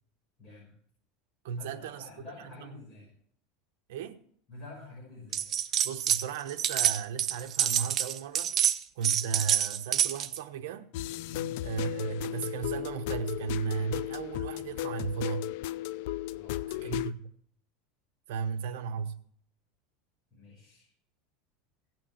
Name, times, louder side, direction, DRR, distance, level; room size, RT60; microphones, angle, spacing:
voice 1, 0.4-0.7 1.6-3.1 4.5-5.5 11.3-11.6 16.3-17.0 18.6-18.7 20.3-20.9, left 3 dB, 20° left, 5.8 m, -48 dB
voice 2, 1.4-2.0 2.4-2.8 3.9-4.2 5.8-8.6 8.9-10.9 11.6-15.5 16.8-17.3 18.3-19.2, right 6 dB, 80° right, 1.1 m, -35 dB
sound 1, 5.3-6.2 6.5-10.4, right 10 dB, 30° right, 0.6 m, -27 dB
sound 2, 10.9-17.1, left 14 dB, 60° left, 0.4 m, -35 dB
17.0 x 6.1 x 7.1 m
supercardioid pair, 170°, 0 cm